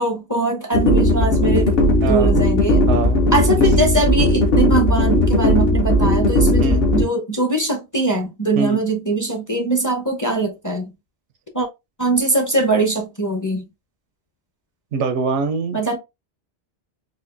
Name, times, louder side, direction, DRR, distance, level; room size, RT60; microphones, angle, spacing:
voice 1, 0.0-1.7 2.0-2.9 3.3-10.9 11.5-11.7 12.0-13.7 15.7-16.0, right 2 dB, 20° left, 0.6 m, -21 dB
sound 1, 0.7-7.0, left 1 dB, 60° left, 1.0 m, -16 dB
voice 2, 2.9-3.2 6.6-6.9 8.5-8.8 14.9-16.0, right 4 dB, 85° right, 1.0 m, -23 dB
4.2 x 2.5 x 2.5 m
omnidirectional pair, 1.2 m